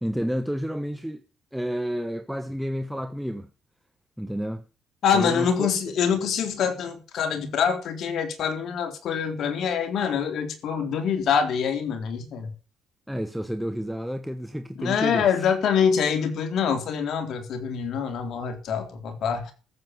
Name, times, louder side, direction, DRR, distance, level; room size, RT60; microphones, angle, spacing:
voice 1, 0.0-1.2 1.5-3.5 4.2-4.6 5.1-5.7 13.1-15.5, equal, ahead, 1.1 m, -30 dB
voice 2, 5.0-12.5 14.8-19.5, left 7 dB, 65° left, 3.5 m, -25 dB
14.0 x 7.6 x 8.0 m
cardioid pair, 95°, 0 cm